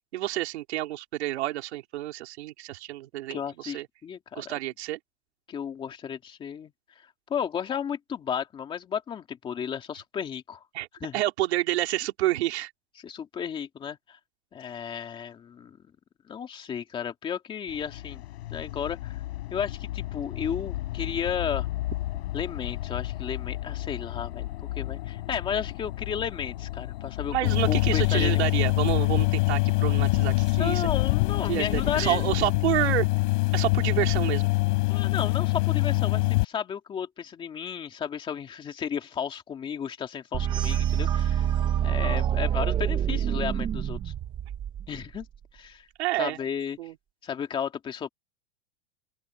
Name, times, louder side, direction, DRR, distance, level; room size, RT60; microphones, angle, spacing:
voice 1, 0.1-3.9 4.4-5.0 10.7-10.9 11.1-12.7 27.3-30.9 31.5-33.1 33.5-34.5 46.0-46.4 46.8-47.0, right 15 dB, 75° right, 3.3 m, -29 dB
voice 2, 3.3-4.5 5.5-6.7 7.3-10.6 11.0-11.2 13.0-14.2 14.5-15.8 16.3-18.2 18.5-19.2 19.5-21.7 22.3-24.5 24.8-28.5 30.6-32.2 34.9-41.5 41.8-44.1 44.9-45.3 45.5-45.9 46.2-46.8 47.2-48.1, left 8 dB, 15° left, 2.3 m, -33 dB
sound 1, 17.7-32.5, left 15 dB, 65° left, 6.9 m, -34 dB
sound 2, 27.4-36.4, left 24 dB, 45° left, 4.2 m, -24 dB
sound 3, 40.3-45.2, right 10 dB, 15° right, 0.7 m, -26 dB
open air
supercardioid pair, 175°, 33 cm